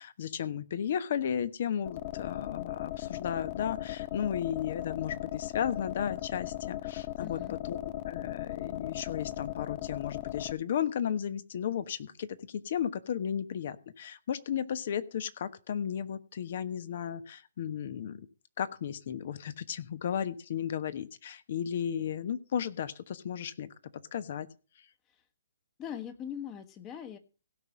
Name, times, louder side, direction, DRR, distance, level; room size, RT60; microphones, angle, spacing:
voice 1, 0.0-7.8 8.1-18.3 18.6-23.7 24.1-24.5, left 8 dB, 55° left, 13 dB, 1.2 m, -34 dB
sound 1, 1.9-10.5, left 15 dB, 40° left, 0.7 m, -38 dB
voice 2, 7.2-7.5 25.8-27.2, left 9 dB, 25° left, 8 dB, 1.4 m, -41 dB
16.5 x 5.6 x 6.3 m, 0.35 s
hypercardioid pair, 135°, 0 cm